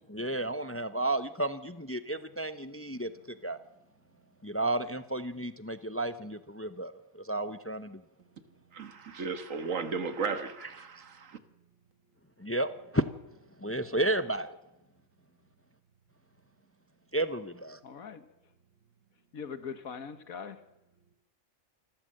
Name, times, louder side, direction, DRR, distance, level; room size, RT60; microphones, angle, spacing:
voice 1, 0.1-3.6 4.4-8.0 12.4-13.0 13.6-14.6 17.1-17.8, right 1 dB, 15° left, 0.4 m, -32 dB
voice 2, 8.7-11.4, right 5 dB, 70° right, 1.8 m, -35 dB
voice 3, 17.8-18.5 19.3-20.6, left 6 dB, 85° left, 1.8 m, -42 dB
26.5 x 13.0 x 7.7 m
omnidirectional pair, 1.4 m